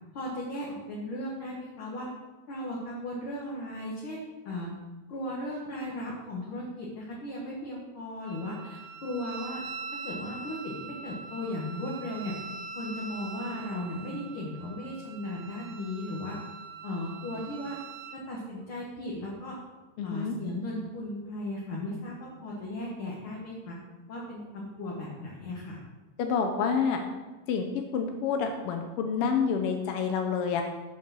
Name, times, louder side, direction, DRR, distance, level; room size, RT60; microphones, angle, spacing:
voice 1, 0.1-2.1 2.5-4.7 5.1-9.6 10.0-12.4 12.8-16.4 16.8-17.8 18.1-19.6 20.0-23.8 24.1-25.8, left 1 dB, 55° left, -3 dB, 1.8 m, -36 dB
Wind instrument woodwind instrument, 8.3-18.2, right 5 dB, 80° right, 2.0 m, -43 dB
voice 2, 20.0-20.4 26.2-27.0 27.5-30.6, left 6 dB, 75° left, 4 dB, 1.3 m, -28 dB
7.5 x 5.5 x 6.2 m, 1.2 s
omnidirectional pair, 3.3 m